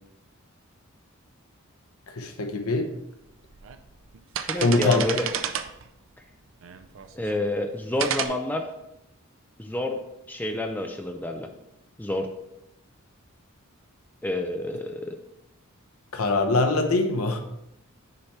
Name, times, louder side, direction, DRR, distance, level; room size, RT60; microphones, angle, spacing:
voice 1, 2.2-2.9 4.5-5.0 16.1-17.4, left 2 dB, 85° left, 6 dB, 0.9 m, -23 dB
sound 1, 2.7-2.8 3.4-3.8 4.1-5.9 6.6-7.3 8.0-8.3, right 8 dB, 60° right, 0.5 m, -30 dB
voice 2, 4.4-5.3 7.1-8.7 9.6-10.0 10.3-11.5 12.0-12.3 14.2-15.2, left 2 dB, 10° left, 4 dB, 0.4 m, -29 dB
6.6 x 4.2 x 4.5 m, 0.86 s
head